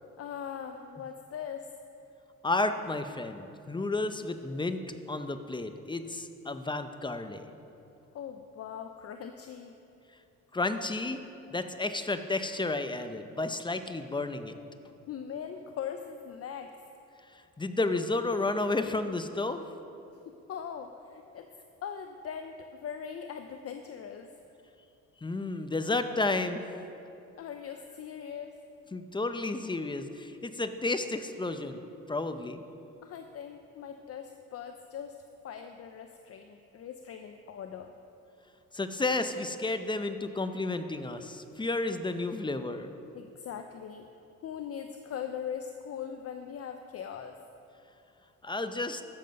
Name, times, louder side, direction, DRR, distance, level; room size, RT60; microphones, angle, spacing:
voice 1, 0.2-1.7 8.1-9.7 15.1-16.7 20.3-21.5 21.8-24.3 27.4-28.5 33.0-35.2 35.4-37.9 43.1-44.1 44.4-47.3, left 8 dB, 50° left, 6 dB, 0.6 m, -40 dB
voice 2, 2.4-7.6 10.5-11.2 11.5-14.6 17.3-19.7 25.2-26.6 28.9-32.6 38.7-42.9 48.4-49.0, left 2 dB, 15° left, 9 dB, 0.7 m, -32 dB
13.0 x 7.7 x 5.3 m, 2.7 s
cardioid pair, 90°, 30 cm